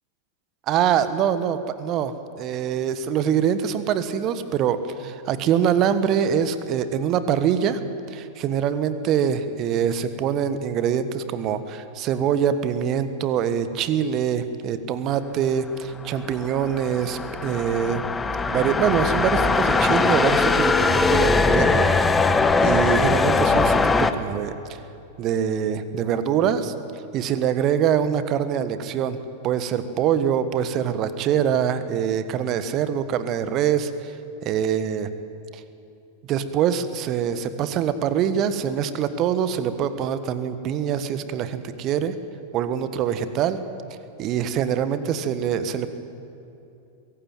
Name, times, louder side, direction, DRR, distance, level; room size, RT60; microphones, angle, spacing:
voice 1, 0.7-7.8 8.1-18.0 18.5-21.9 22.6-24.5 25.2-26.7 27.1-29.2 29.4-34.1 34.4-35.1 35.5-35.6 36.3-42.1 42.5-43.6 44.2-45.9, right 8 dB, 35° right, 12 dB, 1.4 m, -24 dB
sound 1, 16.2-24.1, left 4 dB, 15° left, 1.0 m, -20 dB
22.5 x 16.5 x 9.3 m, 2.8 s
figure-of-eight pair, 90°, 0 cm